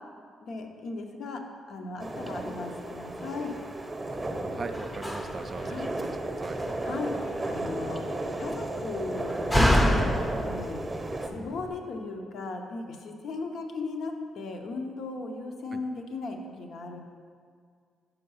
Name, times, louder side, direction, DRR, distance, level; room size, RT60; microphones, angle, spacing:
voice 1, 0.4-1.4 1.7-3.6 5.6-5.9 6.8-8.0 8.4-10.1 10.4-10.8 11.3-17.0, left 3 dB, 65° left, 3 dB, 0.7 m, -37 dB
sound 1, 2.0-11.3, right 2 dB, 15° right, 0.8 m, -34 dB
Slam, 4.1-11.7, equal, 10° left, 0.6 m, -30 dB
voice 2, 4.5-6.6 15.7-15.8, right 4 dB, 40° right, 7 dB, 0.4 m, -39 dB
5.7 x 4.7 x 5.5 m, 2.1 s
cardioid pair, 90°, 0 cm